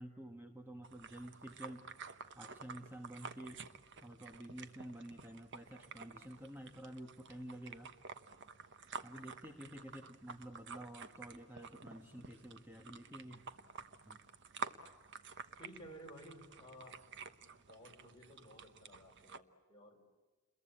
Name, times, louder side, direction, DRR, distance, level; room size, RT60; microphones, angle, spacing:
voice 1, 0.0-1.9 2.3-3.6 4.0-7.9 9.0-13.4 14.1-14.2, right 1 dB, 10° right, 4 dB, 1.4 m, -50 dB
sound 1, 0.8-19.4, right 5 dB, 55° right, 1.1 m, -51 dB
voice 2, 15.6-17.0 17.4-20.0, equal, 20° left, -1 dB, 5.8 m, -56 dB
29.5 x 22.5 x 8.6 m, 1.3 s
head